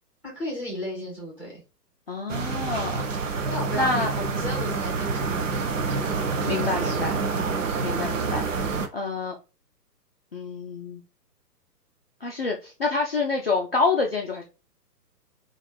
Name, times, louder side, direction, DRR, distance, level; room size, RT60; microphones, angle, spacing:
voice 1, 0.2-1.6 3.5-7.5, equal, 5° right, -2 dB, 1.0 m, -36 dB
voice 2, 2.1-3.0 3.3-3.5 3.8-4.1 6.4-7.1 7.8-9.3 10.3-11.0 12.2-14.4, left 3 dB, 40° left, 0 dB, 0.4 m, -27 dB
sound 1, 2.3-8.9, right 4 dB, 50° right, 0.6 m, -27 dB
3.2 x 2.4 x 2.2 m, 0.30 s
figure-of-eight pair, 125°, 49 cm